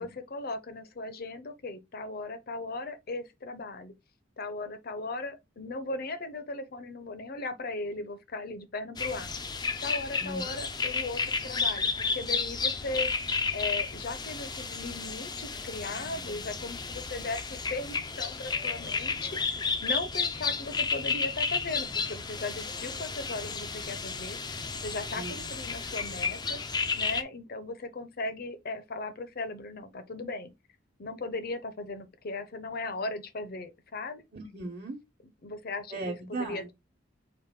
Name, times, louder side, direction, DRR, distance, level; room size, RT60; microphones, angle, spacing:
voice 1, 0.0-3.9 4.4-9.3 9.8-13.1 13.5-24.4 24.8-26.6 27.0-30.5 31.0-34.2 35.4-36.0 36.3-36.7, left 2 dB, 50° left, 0.7 m, -37 dB
sound 1, 9.0-27.2, left 4 dB, 20° left, 0.5 m, -32 dB
voice 2, 10.2-10.6 25.1-25.5 34.3-35.0 35.9-36.7, right 2 dB, 45° right, 1.1 m, -37 dB
4.8 x 2.6 x 3.6 m
head